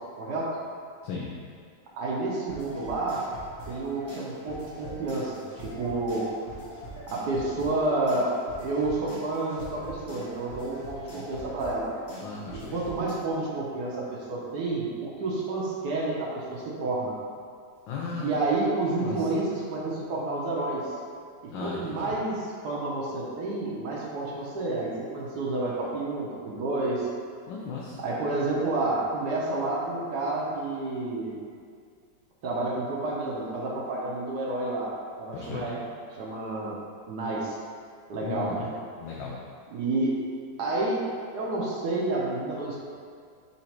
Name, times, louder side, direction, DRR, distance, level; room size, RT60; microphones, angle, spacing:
voice 1, 0.2-0.5 2.0-3.2 3.7-6.3 7.1-8.3 8.6-11.9 12.5-17.1 18.2-20.9 21.6-27.1 28.0-31.4 32.4-34.9 35.2-35.8 36.1-36.8 37.1-37.6 38.1-38.7 39.7-40.1 40.6-41.0 41.3-42.8, right 2 dB, 65° right, -4 dB, 1.2 m, -30 dB
sound 1, 2.5-13.1, right 1 dB, 45° left, 0.8 m, -43 dB
voice 2, 12.2-12.8 17.9-18.3 19.0-19.2 21.5-22.2 27.5-28.0 35.3-35.6 38.2-38.7 39.0-39.4, left 5 dB, 85° left, -4 dB, 1.3 m, -36 dB
3.9 x 2.8 x 4.4 m, 2.2 s
omnidirectional pair, 2.0 m